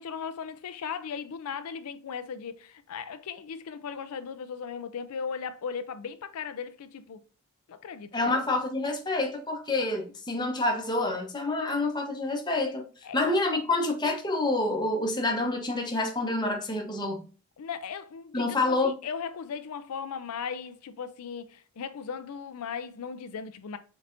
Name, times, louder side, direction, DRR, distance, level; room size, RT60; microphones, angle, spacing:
voice 1, 0.0-7.2 7.7-8.3 13.0-13.2 17.6-23.8, left 6 dB, 90° left, 0.4 m, -37 dB
voice 2, 8.1-12.9 13.1-17.2 18.3-18.9, left 2 dB, 20° left, 0.8 m, -27 dB
5.3 x 4.0 x 2.5 m
head